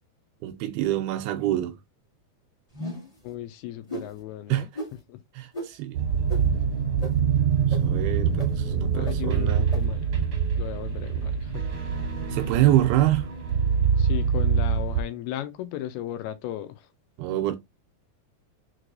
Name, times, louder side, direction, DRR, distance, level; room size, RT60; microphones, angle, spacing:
voice 1, 0.4-1.8 4.5-4.7 5.4-6.0 7.7-9.7 12.3-13.3 17.2-17.6, right 14 dB, 80° right, 2.4 m, -25 dB
sound 1, 2.7-3.2 3.9-4.1 4.7-4.9 5.5-5.7 6.3-6.4 7.0-7.1 7.7-7.8 8.4-8.5 9.0-9.1 9.7-9.8, right 1 dB, 30° left, 0.6 m, -34 dB
voice 2, 3.2-5.2 8.9-10.0 10.6-11.7 14.0-16.9, left 12 dB, 80° left, 2.5 m, -36 dB
sound 2, 5.9-15.0, right 6 dB, 60° right, 1.5 m, -25 dB
5.9 x 3.2 x 2.5 m
omnidirectional pair, 4.6 m